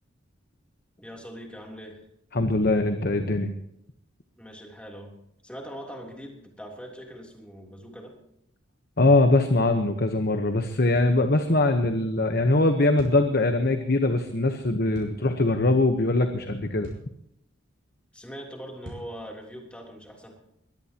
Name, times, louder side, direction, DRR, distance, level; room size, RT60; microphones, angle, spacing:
voice 1, 1.0-2.0 4.4-5.1 5.4-8.2 18.1-20.4, equal, 5° left, 0 dB, 3.3 m, -42 dB
voice 2, 2.3-3.5 9.0-16.9, left 2 dB, 50° left, 6 dB, 1.1 m, -22 dB
sound 1, 10.9-11.2 13.0-13.2 14.9-15.2 16.8-17.1 18.8-19.1, equal, 65° right, 7.5 m, -41 dB
23.0 x 16.5 x 3.0 m, 0.76 s
head